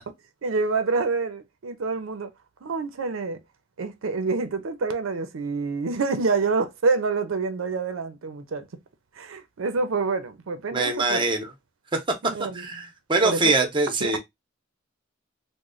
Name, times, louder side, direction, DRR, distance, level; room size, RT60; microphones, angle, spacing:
voice 1, 0.4-2.3 2.6-3.4 3.8-8.7 9.2-11.3 12.2-12.6 13.2-13.5 14.0-14.2, right 4 dB, 80° right, 0.5 m, -27 dB
voice 2, 10.7-11.5 11.9-12.0 12.4-14.2, right 3 dB, 25° right, 0.7 m, -23 dB
3.1 x 2.1 x 3.7 m
head